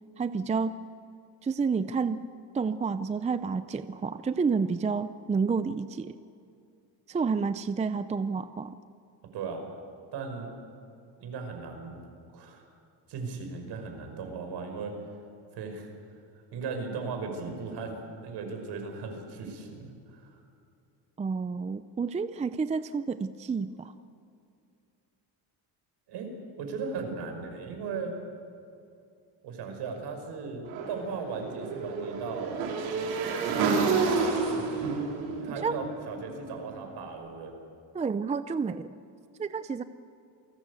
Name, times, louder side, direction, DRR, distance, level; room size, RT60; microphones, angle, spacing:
voice 1, 0.2-0.8 1.4-2.2 2.5-6.2 7.1-8.7 21.2-23.9 35.6-35.8 37.9-38.9 39.4-39.8, right 5 dB, 15° right, 12 dB, 0.5 m, -30 dB
voice 2, 10.1-10.5 11.2-12.0 12.3-12.6 13.1-14.9 15.5-15.9 16.5-20.4 26.1-26.3 26.6-28.1 29.4-32.6 35.4-37.5, right 4 dB, 65° right, 4 dB, 5.5 m, -37 dB
Motorcycle / Engine, 30.7-36.8, right 4 dB, 90° right, 4.8 m, -30 dB
28.0 x 18.5 x 8.3 m, 2.5 s
cardioid pair, 130°, 44 cm